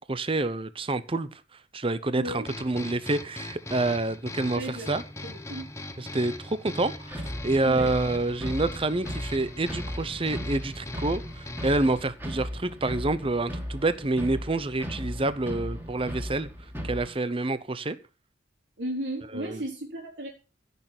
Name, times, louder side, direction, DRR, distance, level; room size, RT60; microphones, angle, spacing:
voice 1, 0.1-1.3 1.7-5.0 6.0-16.5 16.8-18.0 19.3-19.6, right 2 dB, 30° right, 13 dB, 0.9 m, -28 dB
voice 2, 2.1-2.5 4.5-4.9 5.2-5.7 7.6-7.9 18.8-20.3, right 1 dB, 85° right, -1 dB, 4.2 m, -35 dB
sound 1, 2.5-12.1, left 2 dB, 15° left, 1.0 m, -40 dB
sound 2, 7.1-17.1, equal, 10° right, 2.9 m, -37 dB
16.0 x 6.8 x 6.1 m, 0.31 s
head